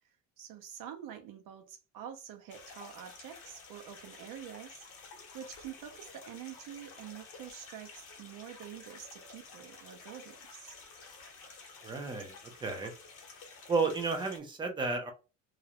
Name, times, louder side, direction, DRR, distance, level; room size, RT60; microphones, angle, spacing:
voice 1, 0.4-10.8, right 9 dB, 75° right, 0.7 m, -47 dB
sound 1, 2.5-14.4, left 4 dB, 40° left, 0.8 m, -52 dB
voice 2, 11.8-12.3 12.6-12.9 13.7-15.1, right 4 dB, 15° right, 0.3 m, -32 dB
2.4 x 2.0 x 2.8 m
cardioid pair, 175°, 33 cm